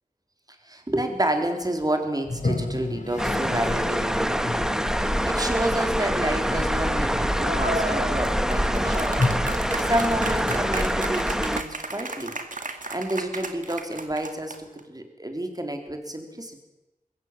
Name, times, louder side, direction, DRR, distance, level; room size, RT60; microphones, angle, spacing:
voice 1, 0.6-9.2 9.5-12.4 12.9-16.6, right 1 dB, 25° right, 5 dB, 3.7 m, -30 dB
Toilet flush, 2.2-11.3, left 2 dB, 60° left, 4.5 m, -33 dB
sound 1, 3.2-11.6, equal, 5° right, 1.1 m, -25 dB
sound 2, 7.4-14.8, right 2 dB, 65° right, 2.4 m, -34 dB
21.5 x 17.5 x 7.6 m, 1.0 s
wide cardioid pair, 65°, 14 cm